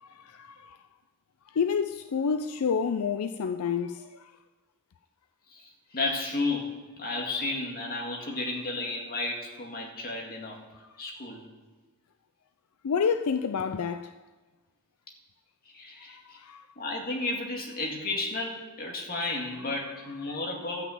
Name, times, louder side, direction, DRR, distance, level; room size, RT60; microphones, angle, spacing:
voice 1, 0.0-0.8 1.5-4.2 12.8-14.1 16.3-16.6 20.3-20.4, left 6 dB, 80° left, 0.4 m, -29 dB
voice 2, 5.5-10.6 11.0-11.5 15.7-16.4 16.8-20.8, left 2 dB, 45° left, 2.1 m, -33 dB
13.0 x 6.1 x 7.8 m
head